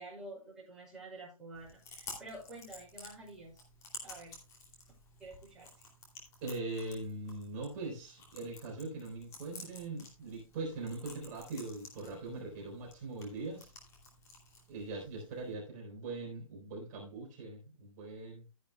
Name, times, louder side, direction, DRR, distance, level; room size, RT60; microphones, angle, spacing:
voice 1, 0.0-3.6 4.0-4.4 5.2-5.9, right 2 dB, 5° right, -7 dB, 6.0 m, -49 dB
Chewing mastication, 1.5-15.5, left 3 dB, 15° left, 2.7 m, -53 dB
voice 2, 6.4-13.7 14.7-18.4, right 3 dB, 30° right, -1 dB, 3.9 m, -41 dB
12.5 x 10.5 x 2.2 m, 0.31 s
hypercardioid pair, 155°, 18 cm